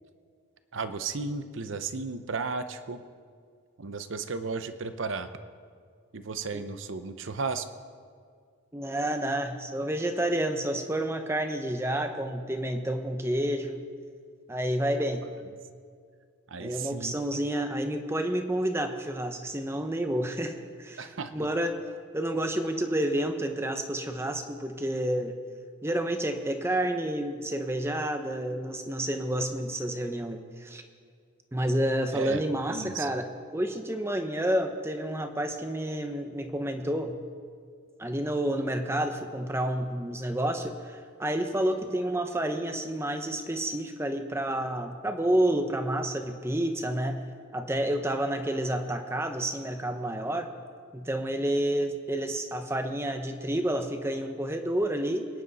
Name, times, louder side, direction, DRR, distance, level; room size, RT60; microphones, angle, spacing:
voice 1, 0.7-3.0 3.8-5.3 6.1-7.7 16.5-17.1 21.0-21.5 32.1-32.4 32.7-33.1, right 4 dB, 70° right, 11 dB, 0.7 m, -34 dB
voice 2, 8.7-13.8 14.5-15.2 16.6-21.8 22.1-25.4 25.8-30.8 31.5-33.3 33.5-37.1 38.0-47.2 47.5-50.5 50.9-55.3, right 1 dB, 10° right, 6 dB, 0.9 m, -29 dB
23.5 x 10.5 x 4.1 m, 2.1 s
head